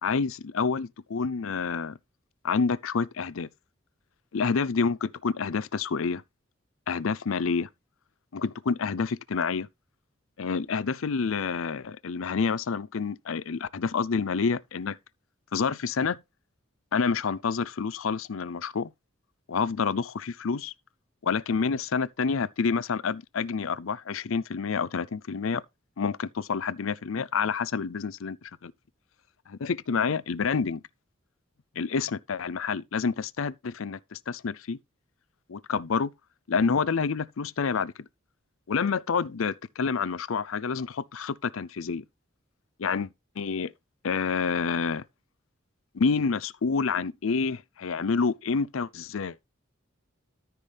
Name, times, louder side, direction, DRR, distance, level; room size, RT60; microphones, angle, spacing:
voice 1, 0.0-2.0 2.4-3.5 4.3-6.2 6.9-7.7 8.3-9.7 10.4-15.0 15.5-16.2 16.9-18.9 19.5-20.7 21.2-25.6 26.0-28.7 29.5-30.8 31.8-34.8 35.5-36.1 36.5-37.9 38.7-42.0 42.8-43.1 43.4-43.7 44.0-45.0 45.9-49.4, left 5 dB, 85° left, 0.5 m, -28 dB
13.5 x 5.9 x 3.4 m
head